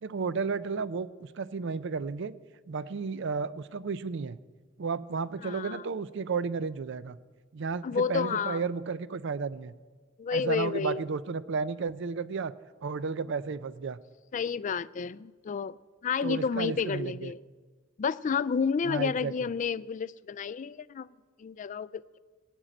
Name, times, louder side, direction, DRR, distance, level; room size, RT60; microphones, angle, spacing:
voice 1, 0.0-2.3 2.7-4.4 4.8-7.2 7.5-9.7 10.3-12.5 12.8-14.0 16.2-17.3 18.9-19.3, right 5 dB, 65° right, 0.5 m, -33 dB
voice 2, 5.4-5.8 7.8-8.6 10.2-11.0 14.3-15.8 16.0-17.4 18.0-21.1 21.4-22.2, left 6 dB, 40° left, 0.3 m, -30 dB
17.5 x 6.2 x 9.1 m
head